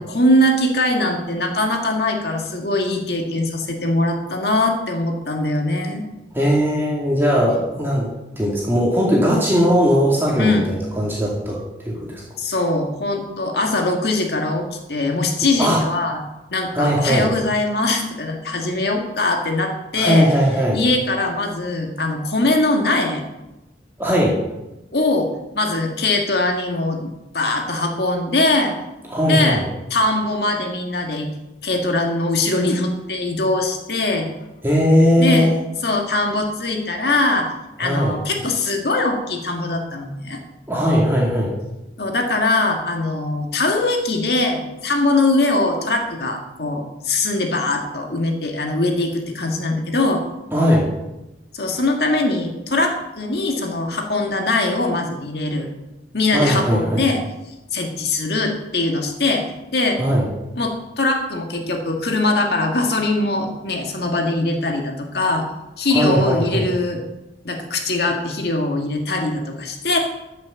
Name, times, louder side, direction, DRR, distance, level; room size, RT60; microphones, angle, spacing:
voice 1, 0.0-6.1 10.4-10.7 12.4-16.2 16.5-20.3 20.7-23.2 24.9-25.3 25.5-28.7 29.3-29.6 29.9-31.3 31.6-34.3 35.2-35.5 35.8-37.5 37.8-40.4 42.0-50.2 51.5-55.7 56.1-57.2 57.7-59.5 59.7-60.0 60.6-65.5 65.8-67.0 67.5-70.0, left 2 dB, 65° left, 3 dB, 1.8 m, -21 dB
voice 2, 6.3-12.2 15.6-15.8 16.7-17.4 20.0-20.8 24.0-24.4 29.1-29.6 34.6-35.5 37.8-38.2 40.7-41.5 50.5-50.9 56.3-57.0 60.0-60.3 65.9-66.6, equal, 15° right, -4 dB, 2.2 m, -18 dB
14.0 x 6.4 x 7.1 m, 0.96 s
head